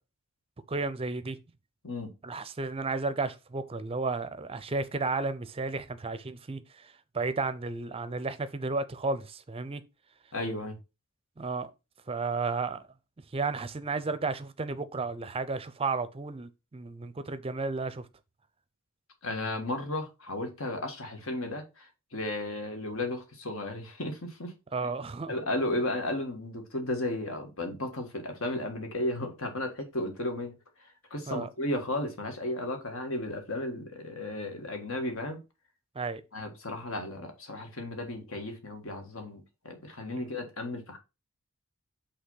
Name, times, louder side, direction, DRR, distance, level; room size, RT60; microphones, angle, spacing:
voice 1, 0.7-1.4 2.2-9.8 11.4-11.7 12.1-12.9 13.3-18.1 24.7-25.3 31.3-31.5 35.9-36.2 40.2-40.4, right 3 dB, 25° right, 0.5 m, -33 dB
voice 2, 10.3-10.8 19.2-24.5 25.3-30.5 30.8-35.4 36.3-41.0, left 1 dB, 65° left, 1.7 m, -34 dB
5.7 x 3.4 x 5.6 m
head